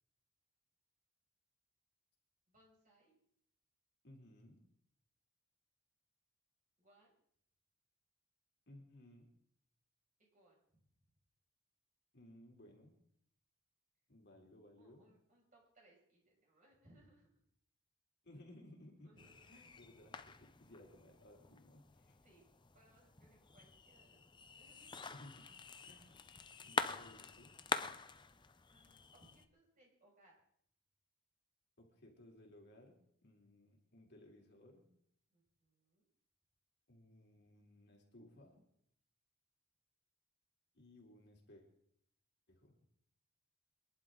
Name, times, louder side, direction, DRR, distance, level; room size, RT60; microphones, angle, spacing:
voice 1, 2.5-3.2 6.8-7.1 10.3-10.8 14.8-17.4 19.0-19.5 22.2-22.4 22.7-25.0 28.7-30.4 35.3-36.1, right 1 dB, 35° right, -3 dB, 6.2 m, -69 dB
voice 2, 4.0-4.6 8.7-9.3 12.1-12.9 14.1-15.0 18.2-19.1 19.5-22.2 25.1-25.5 25.8-26.2 26.6-27.5 31.8-34.9 36.9-38.6 40.7-41.6 42.5-42.8, left 1 dB, 50° left, 0 dB, 3.3 m, -60 dB
sound 1, 19.2-29.5, left 4 dB, 20° left, 0.6 m, -46 dB
25.5 x 11.5 x 3.8 m, 0.68 s
head